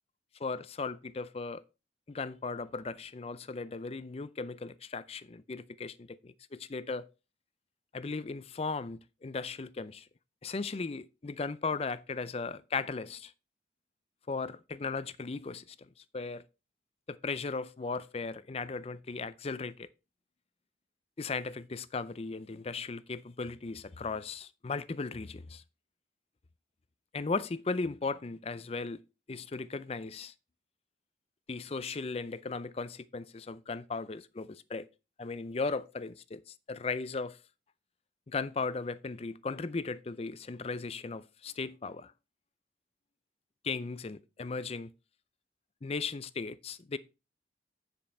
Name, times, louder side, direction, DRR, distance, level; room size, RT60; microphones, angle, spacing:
voice 1, 0.4-1.6 2.1-7.1 7.9-10.1 10.4-13.3 14.3-16.4 17.1-19.9 21.2-25.6 27.1-29.0 29.3-30.3 31.5-34.9 35.2-37.4 38.3-42.1 43.6-44.9 45.8-47.0, left 4 dB, 35° left, 0.4 m, -37 dB
9.4 x 5.2 x 4.3 m
head